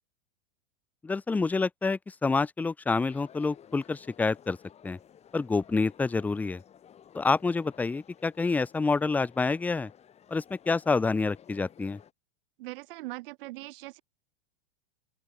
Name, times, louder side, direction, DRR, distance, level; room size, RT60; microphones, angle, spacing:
voice 1, 1.0-4.6 4.8-5.0 5.3-6.6 7.1-9.9 10.3-12.0, left 4 dB, 5° left, 0.6 m, -28 dB
sound 1, 3.0-12.1, left 9 dB, 20° left, 6.2 m, -55 dB
voice 2, 12.6-14.0, right 20 dB, 60° right, 3.2 m, -40 dB
open air
supercardioid pair, 160°, 31 cm